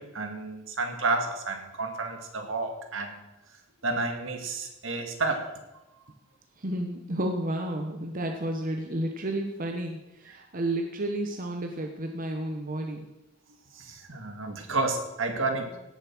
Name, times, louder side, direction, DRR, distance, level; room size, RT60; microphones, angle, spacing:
voice 1, 0.0-3.2 3.8-5.5 13.8-15.8, right 3 dB, 65° right, 5 dB, 2.1 m, -30 dB
voice 2, 6.6-13.1, right 1 dB, 45° right, 4 dB, 1.0 m, -31 dB
17.0 x 7.2 x 6.1 m, 1.0 s
head